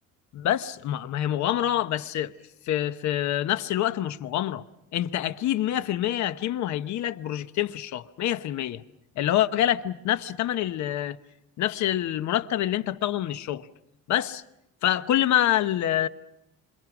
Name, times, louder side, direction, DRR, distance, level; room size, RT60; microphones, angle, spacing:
voice 1, 0.3-2.3 2.6-4.6 4.9-8.8 9.2-11.2 11.6-13.7 14.1-14.4 14.8-16.1, left 12 dB, 70° left, 1.0 m, -26 dB
27.5 x 27.0 x 6.1 m
cardioid pair, 140°, 30 cm